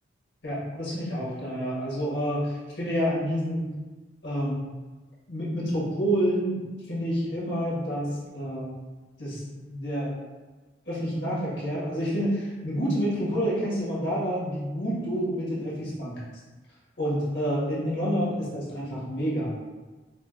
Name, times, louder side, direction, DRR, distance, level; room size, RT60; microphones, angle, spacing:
voice 1, 0.4-3.7 4.2-4.6 5.3-6.6 6.9-8.7 9.2-10.2 10.8-16.2 17.0-19.6, equal, 75° left, -8 dB, 1.5 m, -28 dB
5.0 x 2.4 x 2.4 m, 1.3 s
head